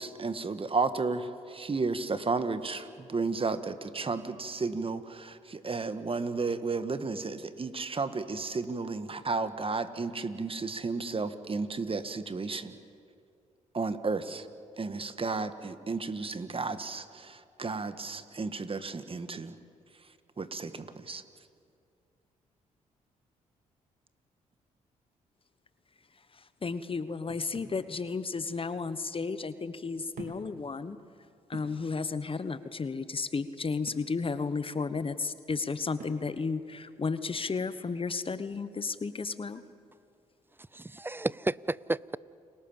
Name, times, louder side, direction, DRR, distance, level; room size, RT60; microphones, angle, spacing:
voice 1, 0.0-12.7 13.7-14.5 14.8-19.6 20.4-21.2, right 4 dB, 35° right, 1.8 m, -33 dB
voice 2, 26.6-31.0 31.5-39.6, left 4 dB, 35° left, 1.2 m, -33 dB
sound 1, 27.3-27.8 28.9-29.0 30.1-30.6 31.0-31.1 31.5-31.8 33.9-34.1 36.0-36.3, right 4 dB, 60° right, 3.5 m, -47 dB
voice 3, 40.7-42.2, right 2 dB, 15° right, 0.6 m, -32 dB
30.0 x 20.5 x 7.4 m
hypercardioid pair, 50°, 16 cm